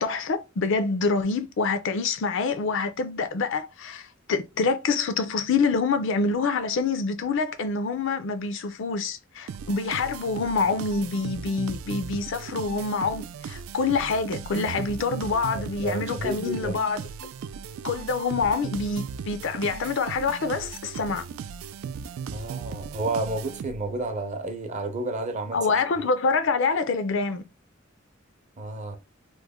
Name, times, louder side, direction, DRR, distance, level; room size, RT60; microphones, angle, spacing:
voice 1, 0.0-17.1 17.8-21.2 25.5-27.5, left 4 dB, 65° left, 0.4 m, -26 dB
sound 1, 9.5-24.0, right 6 dB, 85° right, 0.3 m, -37 dB
voice 2, 15.5-16.8 22.3-25.6 26.0-26.1 28.6-29.0, right 2 dB, 35° right, 0.6 m, -31 dB
3.1 x 2.1 x 3.5 m
head